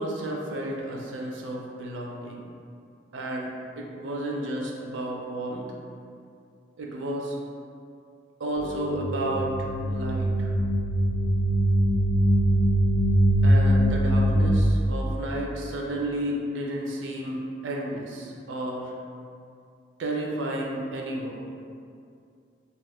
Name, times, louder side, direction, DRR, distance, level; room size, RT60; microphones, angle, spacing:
voice 1, 0.0-2.4 3.1-5.6 6.8-7.4 8.4-10.5 13.4-18.9 20.0-21.4, right 1 dB, 90° right, -1 dB, 0.5 m, -32 dB
sound 1, 8.6-14.6, right 1 dB, 80° left, 0.3 m, -22 dB
2.4 x 2.4 x 3.4 m, 2.4 s
head